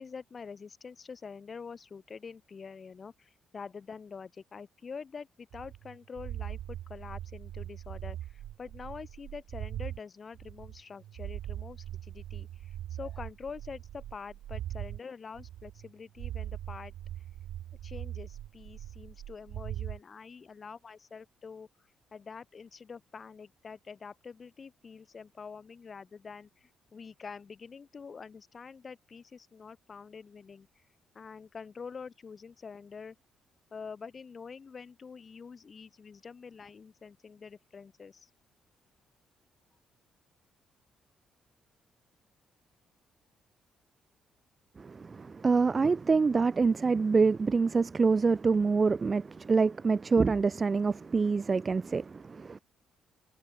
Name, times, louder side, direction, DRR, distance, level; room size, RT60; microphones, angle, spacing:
voice 1, 0.0-16.9 17.8-21.7 22.1-30.7 31.1-33.2 33.7-38.3, left 5 dB, 40° left, 3.0 m, -46 dB
sound 1, 5.5-10.0 10.3-15.0 15.4-15.9 16.2-20.0, right 12 dB, 80° right, 2.0 m, -41 dB
voice 2, 44.8-52.6, right 4 dB, 35° right, 0.4 m, -26 dB
cardioid pair, 90°, 0 cm